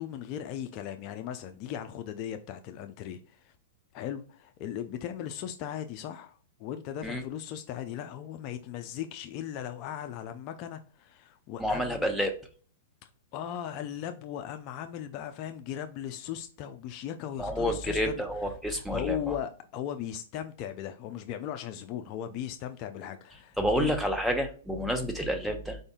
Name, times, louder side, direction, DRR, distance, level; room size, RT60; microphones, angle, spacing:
voice 1, 0.0-3.5 3.9-12.1 13.3-18.2 18.7-23.9, left 10 dB, 40° left, 0.4 m, -38 dB
voice 2, 11.6-12.3 17.4-19.3 23.6-25.8, equal, ahead, 0.8 m, -29 dB
4.8 x 2.6 x 3.6 m
hypercardioid pair, 130°, 0 cm